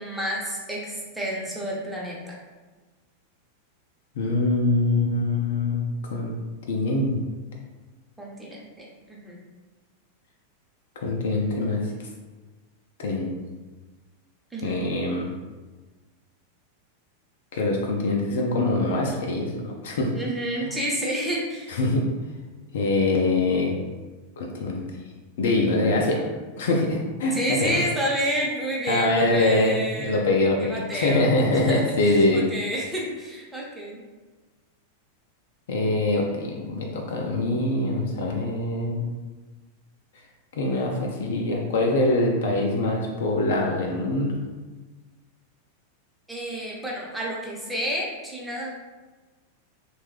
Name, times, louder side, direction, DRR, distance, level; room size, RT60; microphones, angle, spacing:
voice 1, 0.0-2.4 8.2-9.4 14.5-14.8 20.1-21.8 27.3-30.2 30.6-31.3 31.7-34.0 46.3-48.8, equal, 5° right, -4 dB, 0.7 m, -30 dB
voice 2, 4.2-6.3 6.7-7.2 11.0-12.1 13.0-13.4 14.6-15.3 17.5-20.1 20.6-20.7 21.7-22.0 22.7-23.8 24.4-24.8 25.4-26.3 26.6-27.8 28.9-32.4 35.7-39.1 40.5-44.4, left 2 dB, 60° left, 0 dB, 0.4 m, -24 dB
3.1 x 2.3 x 3.2 m, 1.3 s
figure-of-eight pair, 90°, 0 cm